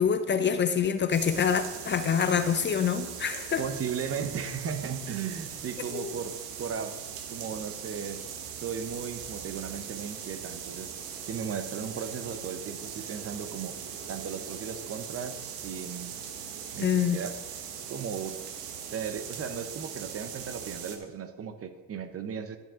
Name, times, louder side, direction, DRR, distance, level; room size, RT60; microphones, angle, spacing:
voice 1, 0.0-3.6 5.9-6.1 16.8-17.2, left 7 dB, 30° left, 10 dB, 0.6 m, -26 dB
sound 1, 1.1-21.0, right 8 dB, 65° right, 1.4 m, -40 dB
voice 2, 3.6-7.0 7.3-8.3 8.5-10.9 11.3-13.8 14.1-16.2 16.7-17.3 17.9-18.4 18.9-22.6, right 7 dB, 35° right, 10 dB, 0.9 m, -36 dB
11.5 x 7.8 x 3.8 m, 1.2 s
supercardioid pair, 95°, 38 cm